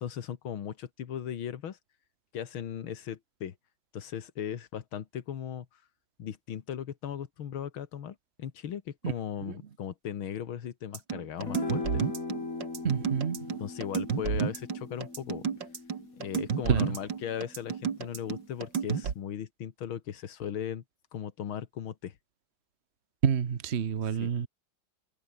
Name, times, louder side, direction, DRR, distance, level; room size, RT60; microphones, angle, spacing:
voice 1, 0.0-1.8 2.3-3.5 3.9-5.8 6.2-12.0 13.6-15.5 16.1-20.8 21.1-22.2 24.2-24.3, left 9 dB, 90° left, 2.3 m, -37 dB
sound 1, 10.9-19.1, right 7 dB, 65° right, 2.5 m, -31 dB
sound 2, 11.4-17.9, left 3 dB, 40° left, 4.1 m, -40 dB
voice 2, 12.8-13.6 16.7-17.0 23.2-24.5, right 7 dB, 40° right, 1.1 m, -28 dB
omnidirectional pair, 2.2 m